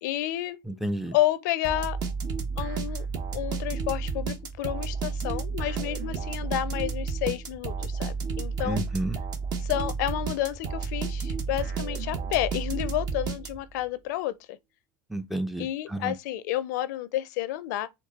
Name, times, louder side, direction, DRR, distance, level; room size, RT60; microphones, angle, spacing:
voice 1, 0.0-0.6 1.1-2.0 2.6-3.1 3.3-8.8 9.6-14.6 15.6-17.9, left 14 dB, 75° left, 0.5 m, -30 dB
voice 2, 0.7-1.1 8.7-9.2 15.1-16.1, right 1 dB, ahead, 0.5 m, -31 dB
sound 1, 1.6-13.8, right 5 dB, 45° right, 0.9 m, -32 dB
4.5 x 2.3 x 4.0 m
supercardioid pair, 110°, 10 cm